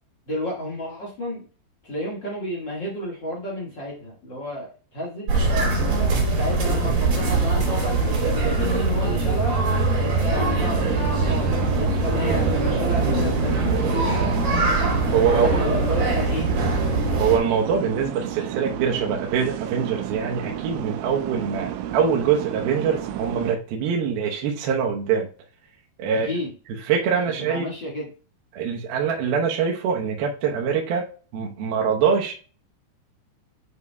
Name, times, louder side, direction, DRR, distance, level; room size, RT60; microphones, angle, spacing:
voice 1, 0.3-1.4 1.8-5.7 6.4-9.6 9.9-14.2 15.3-16.5 26.1-26.5 27.4-28.1, left 1 dB, 70° left, -3 dB, 1.0 m, -31 dB
sound 1, 5.3-17.4, right 3 dB, 55° right, 4.1 m, -22 dB
sound 2, 10.6-23.6, right 11 dB, 90° right, 3.1 m, -31 dB
voice 2, 15.1-15.5 17.2-25.3 26.0-26.3 26.9-27.7 28.5-31.1 31.3-32.3, right 7 dB, 70° right, -1 dB, 2.5 m, -23 dB
9.6 x 5.5 x 2.3 m, 0.37 s
omnidirectional pair, 5.4 m